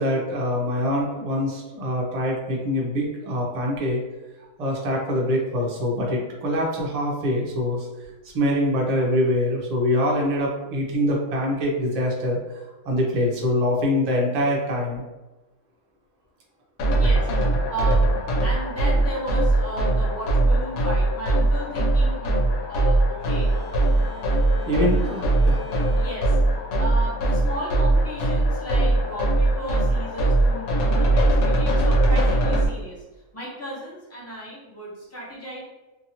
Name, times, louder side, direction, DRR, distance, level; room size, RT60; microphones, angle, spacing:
voice 1, 0.0-4.0 4.6-7.9 8.3-12.4 12.8-15.0 24.7-25.6, left 1 dB, 45° right, -2 dB, 0.5 m, -24 dB
sound 1, 16.8-32.7, right 2 dB, 85° left, 1.1 m, -21 dB
voice 2, 16.9-22.3 22.7-23.5 26.0-26.4 26.8-33.0 33.3-35.6, right 1 dB, 15° left, -6 dB, 0.8 m, -35 dB
sound 2, 23.2-27.6, right 3 dB, 65° right, 0.9 m, -43 dB
2.8 x 2.6 x 2.7 m, 1.1 s
omnidirectional pair, 1.5 m